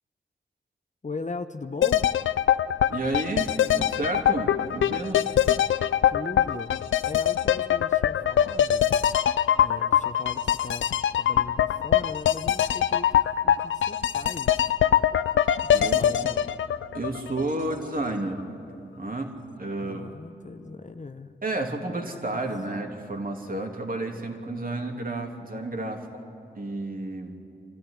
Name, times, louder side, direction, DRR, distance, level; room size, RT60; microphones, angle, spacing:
voice 1, 1.0-2.0 6.1-6.7 7.0-8.9 9.5-10.9 11.2-13.1 13.4-14.8 15.6-16.5 19.8-21.4, left 3 dB, 40° left, 9 dB, 0.9 m, -38 dB
sound 1, 1.8-17.8 18.0-18.1, left 10 dB, 80° left, 0.5 m, -23 dB
voice 2, 2.9-5.3 15.7-16.0 16.9-18.5 18.9-20.2 21.4-26.2 26.5-27.3, right 2 dB, 45° right, 2 dB, 3.0 m, -31 dB
26.5 x 13.5 x 10.0 m, 2.7 s
cardioid pair, 40°, 20 cm